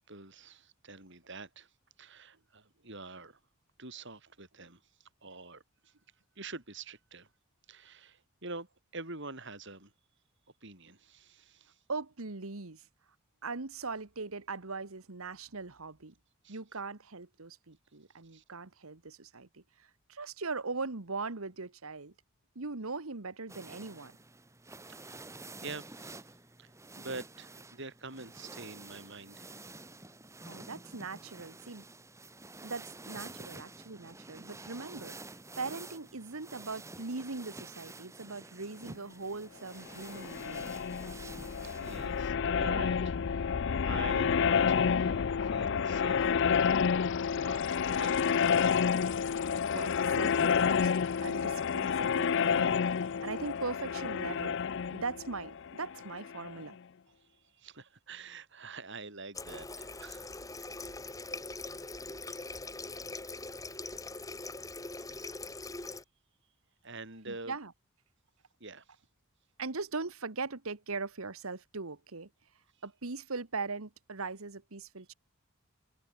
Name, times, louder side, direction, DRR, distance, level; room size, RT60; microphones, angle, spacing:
voice 1, 0.0-1.7 2.0-3.4 3.8-5.9 6.4-7.3 7.7-9.9 10.6-11.8 16.4-16.6 18.3-18.4 24.9-26.2 26.6-26.7 27.0-29.7 41.7-46.8 47.4-48.4 57.5-60.3 65.2-65.4 65.7-65.8 66.8-67.6 68.6-68.9, right 3 dB, 55° right, 7.2 m, -46 dB
voice 2, 11.9-12.9 13.4-16.1 16.5-22.1 22.5-24.1 30.4-31.8 32.6-35.2 35.6-40.7 46.1-47.3 49.7-50.9 51.2-54.6 54.9-56.8 67.3-67.7 69.6-72.3 72.8-75.1, right 4 dB, 75° right, 1.5 m, -40 dB
sound 1, 23.5-42.3, right 2 dB, 15° right, 1.7 m, -49 dB
sound 2, 40.0-56.6, left 6 dB, 55° left, 0.4 m, -29 dB
Water tap faucet, 59.4-66.0, left 3 dB, 15° left, 3.0 m, -42 dB
head